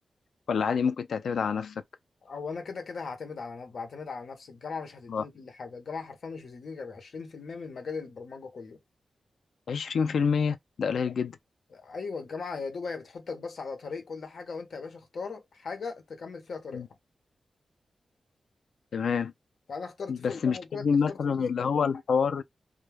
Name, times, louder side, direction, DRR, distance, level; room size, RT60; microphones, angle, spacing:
voice 1, 0.5-1.8 5.1-5.2 9.7-11.4 16.7-16.9 18.9-19.3 20.1-22.4, left 6 dB, 85° left, 0.3 m, -27 dB
voice 2, 2.2-8.8 11.7-16.9 19.7-21.7, left 4 dB, 60° left, 0.8 m, -38 dB
2.2 x 2.0 x 3.2 m
wide cardioid pair, 175°, 0 cm